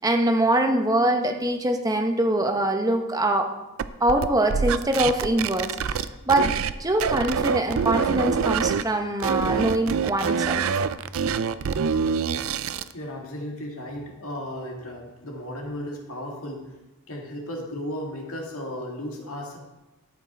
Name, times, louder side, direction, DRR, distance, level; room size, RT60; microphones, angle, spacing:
voice 1, 0.0-3.5 4.0-6.5 6.8-10.8, right 1 dB, 15° right, 4 dB, 0.8 m, -23 dB
sound 1, 3.8-6.7 7.0-8.8 9.2-12.9, right 6 dB, 65° right, 0.4 m, -25 dB
voice 2, 12.9-16.6 17.1-19.6, left 1 dB, 75° left, 0 dB, 2.1 m, -35 dB
12.5 x 6.1 x 4.3 m, 1.0 s
head